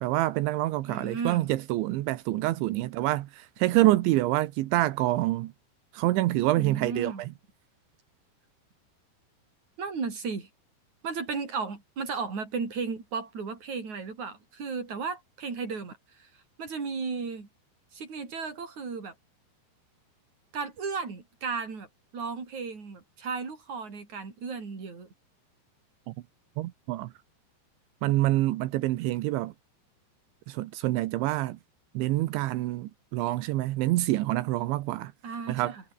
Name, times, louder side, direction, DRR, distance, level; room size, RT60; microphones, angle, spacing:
voice 1, 0.0-5.5 5.9-7.3 26.1-26.2 26.6-27.1 28.0-29.5 30.5-31.6 32.0-35.1 35.5-35.8, right 16 dB, 85° right, 3.4 m, -26 dB
voice 2, 0.8-1.4 6.6-7.2 9.8-10.5 11.0-16.3 16.6-17.5 17.9-19.1 20.5-21.9 22.1-25.1 35.2-35.8, right 5 dB, 40° right, 6.6 m, -35 dB
omnidirectional pair, 5.3 m